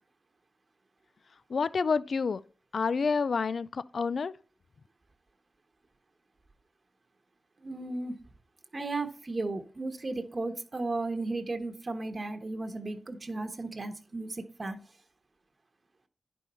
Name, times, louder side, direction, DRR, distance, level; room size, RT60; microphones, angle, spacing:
voice 1, 1.5-2.4 2.7-4.3, left 5 dB, 65° left, 0.3 m, -28 dB
voice 2, 7.6-8.1 8.7-14.8, right 2 dB, 40° right, 1.0 m, -35 dB
10.5 x 5.4 x 4.3 m
wide cardioid pair, 80°, 0 cm